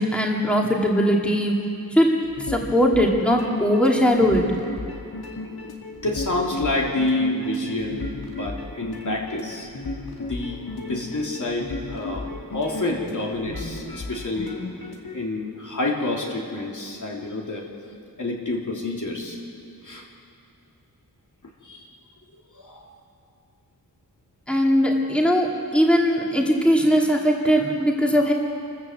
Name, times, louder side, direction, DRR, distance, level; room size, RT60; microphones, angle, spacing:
voice 1, 0.0-1.5 1.9-2.1 2.5-4.5 24.5-28.3, equal, 5° left, -1 dB, 2.3 m, -20 dB
sound 1, 2.2-15.1, left 2 dB, 80° left, 2.6 m, -35 dB
voice 2, 6.0-9.7 10.2-14.6 15.1-17.7 18.2-19.4 19.8-20.1 21.6-21.9 22.5-22.9 25.7-25.8, left 2 dB, 55° left, -2 dB, 3.3 m, -28 dB
27.0 x 14.0 x 8.0 m, 2.6 s
wide cardioid pair, 100°, 37 cm